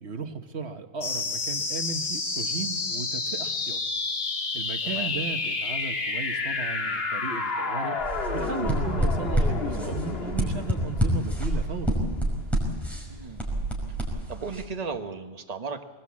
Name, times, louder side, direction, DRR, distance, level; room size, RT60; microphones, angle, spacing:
voice 1, 0.0-3.8 4.5-8.0 8.3-12.0, right 5 dB, 75° right, 6 dB, 1.5 m, -35 dB
sound 1, 1.0-12.0, left 3 dB, 60° left, 1.7 m, -30 dB
sound 2, 8.0-14.6, right 1 dB, ahead, 5.6 m, -28 dB
voice 2, 13.1-13.5 14.3-15.8, right 4 dB, 35° right, 5 dB, 1.3 m, -35 dB
23.0 x 20.0 x 8.4 m, 1.3 s
omnidirectional pair, 1.1 m